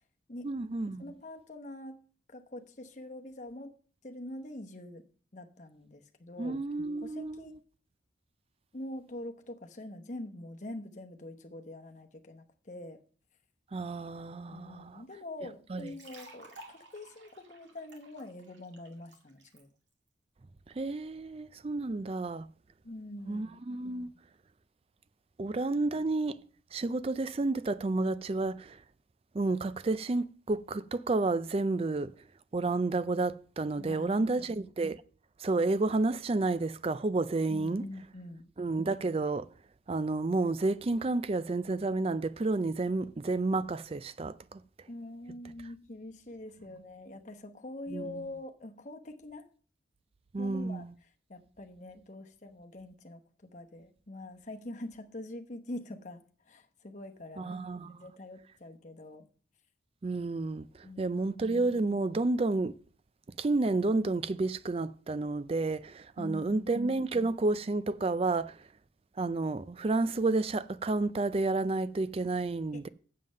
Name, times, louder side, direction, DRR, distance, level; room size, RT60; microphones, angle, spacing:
voice 1, 0.4-1.1 6.4-7.4 13.7-15.0 15.7-15.9 20.8-22.5 23.3-24.1 25.4-26.4 26.7-28.8 29.3-32.1 32.5-35.0 35.4-37.8 38.6-39.5 39.9-44.6 47.9-48.2 50.3-50.9 57.4-58.0 60.0-62.7 63.4-68.6 69.2-72.9, right 3 dB, 30° right, 0.4 m, -30 dB
voice 2, 1.0-2.0 2.3-3.7 4.0-5.0 5.3-6.6 7.0-7.5 8.7-13.0 14.5-19.7 22.8-23.6 33.8-34.5 37.5-38.5 44.9-49.5 50.4-50.9 51.3-53.2 53.5-57.5 57.9-59.3 60.8-61.2 66.2-66.7 72.7-72.8, left 1 dB, 40° left, 1.0 m, -44 dB
sound 1, 15.8-19.6, right 2 dB, 75° right, 2.2 m, -54 dB
7.6 x 7.5 x 6.4 m
head